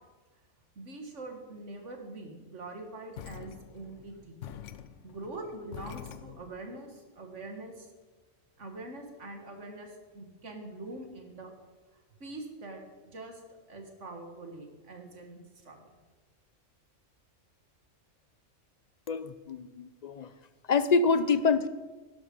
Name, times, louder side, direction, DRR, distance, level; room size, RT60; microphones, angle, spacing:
voice 1, 0.8-4.6 5.0-7.9 8.6-11.5 12.2-12.8 13.1-13.4 13.7-15.9, right 2 dB, 75° right, 4 dB, 2.1 m, -44 dB
sound 1, 3.1-6.6, left 10 dB, 80° left, 1.0 m, -46 dB
voice 2, 19.1-20.3 20.7-21.7, left 4 dB, 60° left, 14 dB, 0.4 m, -26 dB
12.0 x 11.0 x 5.4 m, 1.3 s
omnidirectional pair, 1.3 m